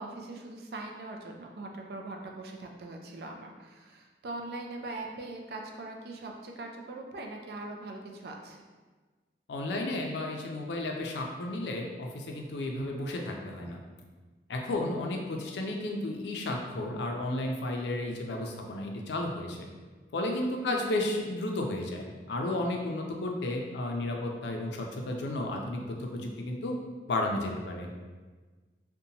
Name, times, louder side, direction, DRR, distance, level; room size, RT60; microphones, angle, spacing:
voice 1, 0.0-8.6 20.6-20.9, right 2 dB, 60° right, 2 dB, 0.3 m, -41 dB
voice 2, 9.5-13.8 14.5-19.6 20.1-26.8 27.1-27.9, left 1 dB, 80° left, 1 dB, 0.4 m, -33 dB
2.8 x 2.2 x 2.7 m, 1.4 s
head